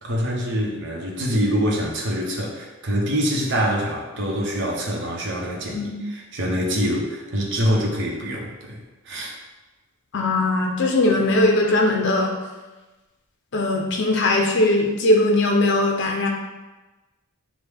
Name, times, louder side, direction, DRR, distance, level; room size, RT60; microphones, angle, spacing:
voice 1, 0.0-9.3, equal, 55° right, -1 dB, 0.9 m, -25 dB
voice 2, 10.1-12.3 13.5-16.3, left 2 dB, 55° left, 1 dB, 0.7 m, -20 dB
6.1 x 2.3 x 3.5 m, 1.1 s
head